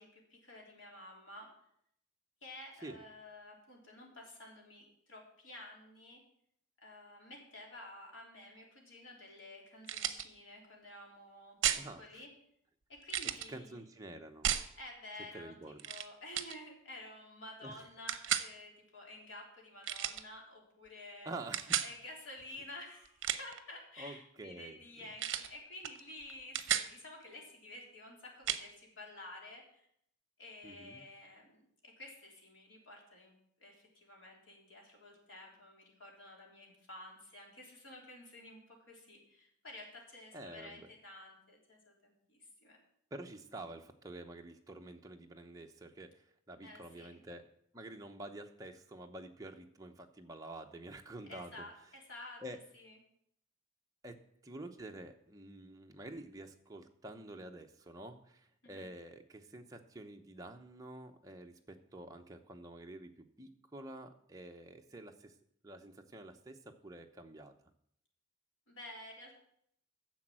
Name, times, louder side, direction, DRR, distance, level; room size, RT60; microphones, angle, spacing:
voice 1, 0.0-1.5 2.4-6.2 6.8-12.3 12.9-13.8 14.8-15.6 15.8-21.3 21.6-29.9 30.4-33.3 33.6-38.6 38.9-42.8 46.6-47.2 51.3-52.4 52.7-53.0 58.6-58.9 68.7-69.4, left 1 dB, 70° left, -1 dB, 3.6 m, -51 dB
sound 1, 9.8-10.3 11.6-11.9 13.1-13.5 14.4-14.7 15.8-16.1 16.3-16.6 18.1-18.5 19.8-20.2 21.5-21.9 23.1-23.6 25.2-25.5 25.8-26.0 26.3-26.9 28.5-28.6, right 10 dB, 65° right, 0.8 m, -33 dB
voice 2, 11.8-12.2 13.5-14.5 15.3-15.9 17.6-17.8 21.2-21.8 24.0-24.8 30.6-31.0 40.3-40.9 43.1-47.5 47.7-51.7 52.4-52.6 54.0-54.2 54.4-63.1 63.4-65.3 65.6-67.5, right 1 dB, 15° right, 3 dB, 0.8 m, -48 dB
10.5 x 7.1 x 7.6 m, 0.71 s
head